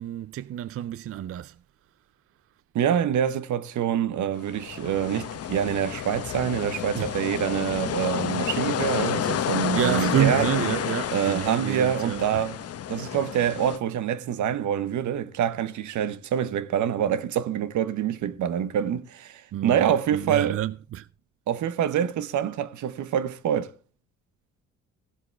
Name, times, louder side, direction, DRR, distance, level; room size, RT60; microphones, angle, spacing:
voice 1, 0.0-1.6 6.9-7.1 9.7-12.4 19.5-21.1, right 12 dB, 50° right, 0.5 m, -28 dB
voice 2, 2.7-10.5 11.1-12.6 12.9-20.6 21.5-23.7, right 9 dB, 75° right, 1.0 m, -26 dB
sound 1, 4.4-13.8, left 9 dB, 55° left, 0.9 m, -30 dB
16.0 x 7.8 x 3.3 m
cardioid pair, 90°, 30 cm